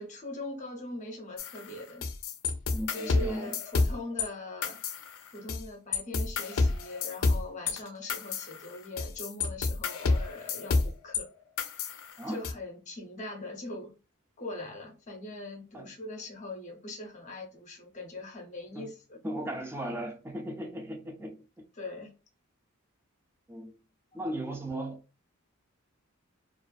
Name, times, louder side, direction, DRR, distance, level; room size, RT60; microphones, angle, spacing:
voice 1, 0.0-2.0 2.9-4.8 5.3-11.3 12.3-13.9 14.4-19.2 21.7-22.1 24.1-24.3, left 2 dB, 35° left, 0.6 m, -41 dB
sound 1, 1.4-4.3 4.6-5.6 5.9-11.2 11.6-12.5, left 3 dB, 75° left, 0.4 m, -30 dB
voice 2, 2.7-3.5 12.2-12.4 15.7-15.9 18.7-18.9 19.2-21.4 23.5-23.7 24.1-25.0, right 1 dB, 10° right, 0.4 m, -36 dB
2.4 x 2.4 x 2.3 m
head